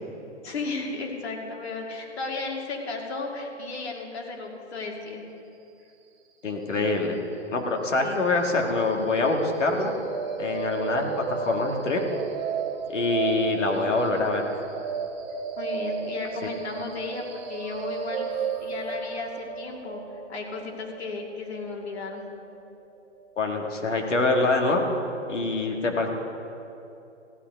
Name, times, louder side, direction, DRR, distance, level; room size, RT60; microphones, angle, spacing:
voice 1, 0.4-5.2 8.0-8.2 15.6-20.0 20.3-22.2, left 3 dB, 60° left, 1 dB, 2.5 m, -34 dB
voice 2, 6.4-7.2 7.5-9.9 10.4-12.0 12.9-14.5 23.4-24.9 25.3-26.1, left 3 dB, 85° left, 2 dB, 2.1 m, -25 dB
sound 1, 9.3-23.3, right 6 dB, 40° right, 1.0 m, -34 dB
15.5 x 9.1 x 5.3 m, 2.7 s
hypercardioid pair, 145°, 36 cm